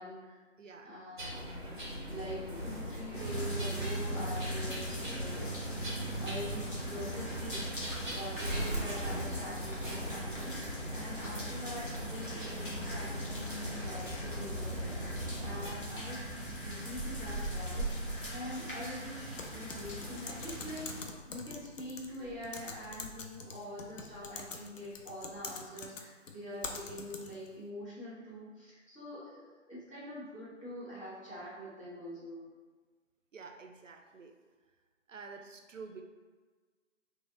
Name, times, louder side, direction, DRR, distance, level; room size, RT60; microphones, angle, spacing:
voice 1, 0.0-0.4 0.8-1.4 2.1-5.6 6.2-15.0 15.4-17.9 18.3-19.2 19.5-32.4, left 1 dB, 25° left, -14 dB, 1.1 m, -44 dB
voice 2, 0.6-1.0 33.3-34.4 35.1-36.0, right 4 dB, 75° right, 3 dB, 0.5 m, -49 dB
sound 1, 1.2-15.7, equal, 40° right, 0.7 m, -40 dB
sound 2, 3.1-21.0, right 1 dB, 45° left, 0.7 m, -39 dB
Typing, 19.4-27.5, left 4 dB, 80° left, 0.5 m, -45 dB
3.1 x 2.4 x 2.5 m, 1.4 s
figure-of-eight pair, 170°, 38 cm